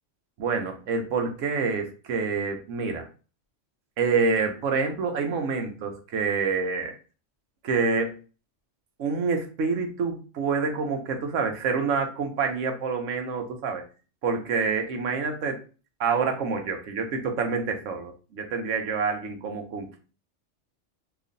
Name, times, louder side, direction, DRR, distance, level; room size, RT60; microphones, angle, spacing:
voice 1, 0.4-3.0 4.0-6.9 7.6-8.2 9.0-13.8 14.2-15.6 16.0-20.0, right 5 dB, 85° right, 5 dB, 1.1 m, -27 dB
3.0 x 2.5 x 3.8 m, 0.35 s
omnidirectional pair, 1.3 m